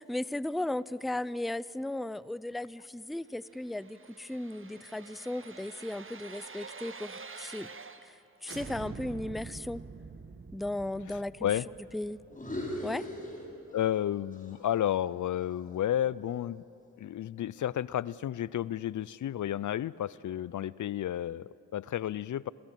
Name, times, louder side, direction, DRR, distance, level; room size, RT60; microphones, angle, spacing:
voice 1, 0.0-7.7 8.1-8.2 8.4-9.8 10.5-11.5 11.9-12.2 12.8-13.1, left 1 dB, ahead, 18 dB, 0.5 m, -36 dB
sound 1, 3.4-8.2 8.4-13.3 13.7-13.8, right 4 dB, 35° right, 1.3 m, -47 dB
voice 2, 11.1-11.7 13.7-16.6 17.0-22.5, left 11 dB, 60° left, 21 dB, 0.5 m, -32 dB
sound 2, 12.3-14.0 14.3-16.5, left 1 dB, 25° left, 6.5 m, -41 dB
27.0 x 16.0 x 7.4 m, 2.8 s
supercardioid pair, 45°, 34 cm